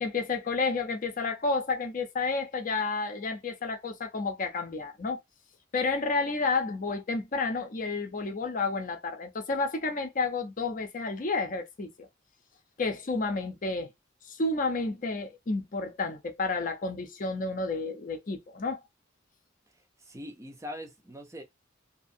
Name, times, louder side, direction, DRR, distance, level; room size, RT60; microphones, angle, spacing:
voice 1, 0.0-5.2 5.7-12.1 12.8-13.9 14.3-18.8, left 3 dB, 40° left, 0.5 m, -31 dB
voice 2, 20.0-21.4, left 1 dB, 15° right, 0.5 m, -42 dB
2.8 x 2.5 x 2.6 m
head